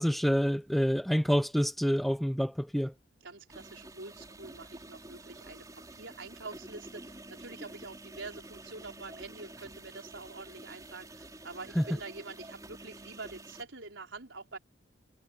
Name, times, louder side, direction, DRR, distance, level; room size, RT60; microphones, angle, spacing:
voice 1, 0.0-2.9 11.8-11.9, equal, ahead, 0.5 m, -27 dB
voice 2, 3.2-14.6, right 3 dB, 90° right, 4.8 m, -46 dB
sound 1, 3.5-13.6, right 1 dB, 20° right, 4.5 m, -49 dB
head